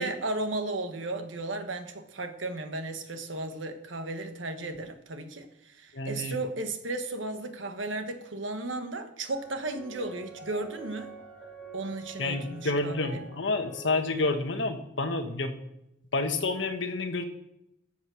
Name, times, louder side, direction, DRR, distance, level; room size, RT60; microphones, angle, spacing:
voice 1, 0.0-11.1 11.7-13.2, right 2 dB, 90° right, 7 dB, 1.4 m, -35 dB
voice 2, 5.9-6.4 12.2-15.5 16.1-17.2, left 3 dB, 75° left, 6 dB, 1.4 m, -29 dB
sound 1, 9.3-14.4, right 4 dB, 10° left, 4.4 m, -47 dB
13.0 x 7.4 x 6.3 m, 0.84 s
head